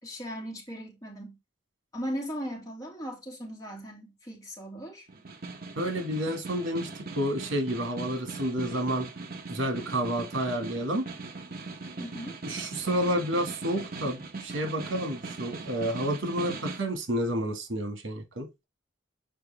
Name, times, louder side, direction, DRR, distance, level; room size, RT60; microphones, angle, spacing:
voice 1, 0.0-1.4 1.9-5.1 12.0-12.4, equal, 20° left, 2.3 m, -38 dB
Snare drum, 5.1-16.9, right 3 dB, 50° right, 1.0 m, -40 dB
voice 2, 5.8-6.9 7.1-9.1 9.5-11.1 12.4-18.6, equal, 85° right, 1.8 m, -30 dB
6.6 x 5.0 x 3.3 m
head